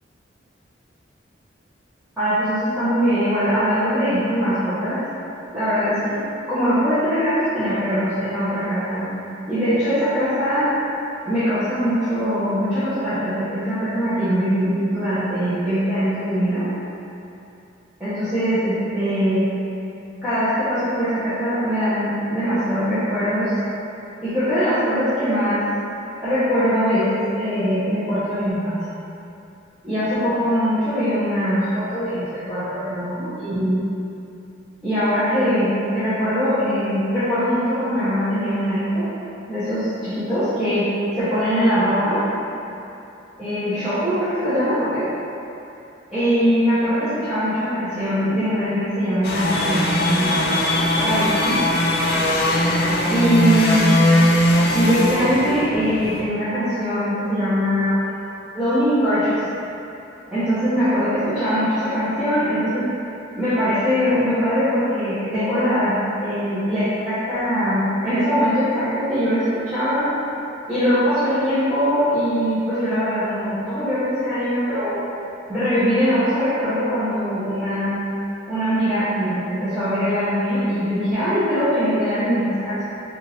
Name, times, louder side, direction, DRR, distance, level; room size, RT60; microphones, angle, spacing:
voice 1, 2.2-5.0 5.5-6.0 6.5-9.1 9.5-10.7 11.2-16.7 18.0-19.5 20.2-23.5 24.2-25.6 26.2-28.9 29.8-33.8 34.8-39.1 39.5-40.9 41.2-42.2 43.4-45.0 46.1-50.4 51.0-51.6 53.1-53.8 54.7-58.0 58.5-59.4 60.3-62.9 63.3-70.1 70.7-75.0 75.5-78.0 78.5-82.8, equal, 5° right, -18 dB, 1.2 m, -21 dB
sound 1, 49.2-56.2, left 1 dB, 55° left, 0.6 m, -19 dB
5.1 x 2.7 x 3.5 m, 2.8 s
head